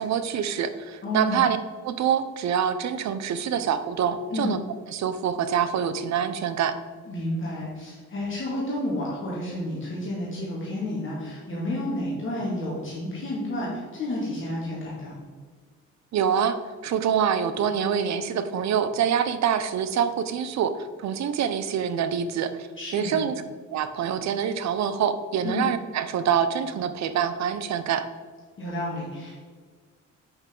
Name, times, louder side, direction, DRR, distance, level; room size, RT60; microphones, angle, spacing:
voice 1, 0.0-1.6 1.8-4.6 4.9-6.7 16.1-16.6 16.8-22.7 22.9-23.3 23.7-28.0, right 8 dB, 65° right, 11 dB, 0.7 m, -25 dB
voice 2, 1.0-1.4 4.3-4.5 7.1-15.1 22.8-23.2 25.4-25.6 28.6-29.3, left 1 dB, 40° left, -6 dB, 2.1 m, -30 dB
8.0 x 5.9 x 3.8 m, 1.5 s
cardioid pair, 90°, 30 cm